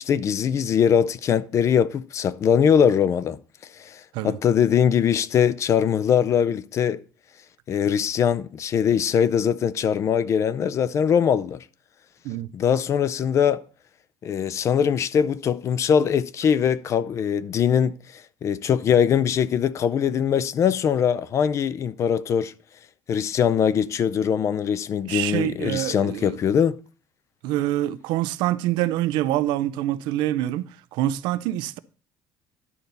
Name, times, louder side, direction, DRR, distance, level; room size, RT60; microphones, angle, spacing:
voice 1, 0.0-3.4 3.8-7.0 7.7-11.6 12.5-13.6 14.2-17.9 18.4-22.5 23.1-26.8, left 8 dB, 40° left, 0.4 m, -22 dB
voice 2, 25.1-26.4 27.4-30.7 30.9-31.8, right 14 dB, 85° right, 0.5 m, -25 dB
11.0 x 3.9 x 6.8 m
cardioid pair, 135°, 8 cm